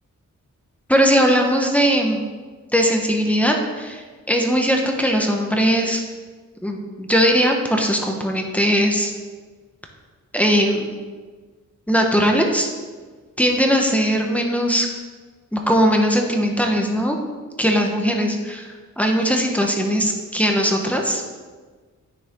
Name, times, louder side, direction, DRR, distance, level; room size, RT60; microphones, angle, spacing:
voice 1, 0.9-2.2 2.7-6.0 6.6-9.1 10.3-10.9 11.9-12.7 13.4-14.9 15.5-17.2 17.6-18.7 19.0-21.2, equal, 5° left, 2 dB, 1.4 m, -19 dB
9.4 x 6.7 x 3.9 m, 1.4 s
cardioid pair, 70°, 31 cm